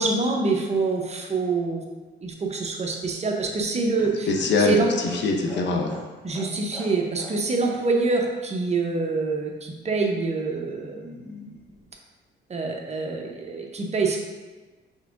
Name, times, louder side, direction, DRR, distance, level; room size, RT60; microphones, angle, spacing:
voice 1, 0.0-1.8 2.2-4.3 4.6-4.9 6.2-11.5 12.5-14.2, right 3 dB, 35° right, 1 dB, 0.7 m, -26 dB
Laughter, 3.4-7.4 7.6-7.8 8.1-8.2, equal, 10° left, 1.3 m, -41 dB
voice 2, 4.3-5.9, left 3 dB, 65° left, 2 dB, 0.6 m, -23 dB
5.4 x 3.4 x 2.5 m, 1.3 s
cardioid pair, 90°, 20 cm